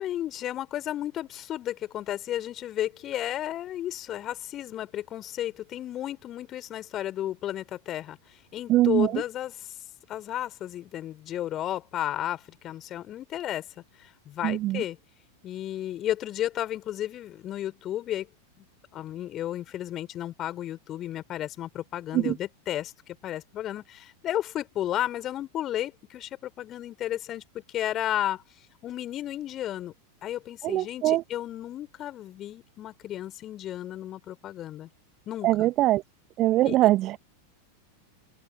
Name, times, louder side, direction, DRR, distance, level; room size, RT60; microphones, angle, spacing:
voice 1, 0.0-9.7 10.1-13.7 14.0-15.0 15.4-18.3 18.6-18.7 18.9-22.9 23.2-28.4 28.8-29.9 30.2-34.9 35.3-35.7 36.6-36.8, left 12 dB, 30° left, 4.5 m, -33 dB
voice 2, 8.7-9.2 14.4-14.8 22.1-22.3 30.6-31.2 35.4-36.0 36.4-37.2, right 16 dB, 35° right, 0.6 m, -22 dB
open air
figure-of-eight pair, 90°, 0 cm